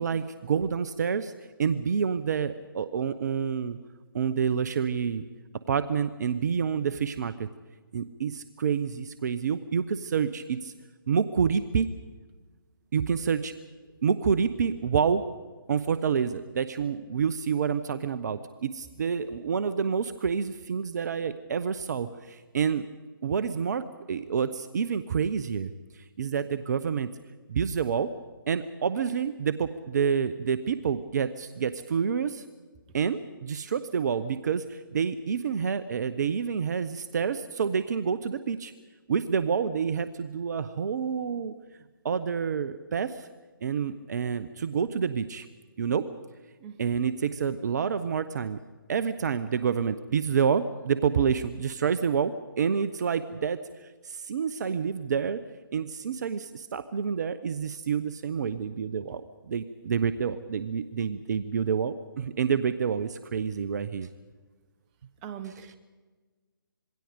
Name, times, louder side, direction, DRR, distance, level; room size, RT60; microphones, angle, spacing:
voice 1, 0.0-1.3 1.6-3.8 4.1-5.2 5.7-7.5 7.9-10.7 11.1-11.9 12.9-13.5 14.0-15.2 15.7-22.8 23.2-27.1 27.5-28.1 28.5-32.4 32.9-38.7 39.1-41.5 42.0-43.3 43.6-45.5 45.8-46.1 46.8-48.6 48.9-55.4 55.7-64.1 65.4-65.7, right 6 dB, 50° right, 13 dB, 0.9 m, -28 dB
voice 2, 65.2-65.8, right 9 dB, 25° right, 10 dB, 1.3 m, -40 dB
26.5 x 21.5 x 5.2 m, 1.4 s
figure-of-eight pair, 145°, 12 cm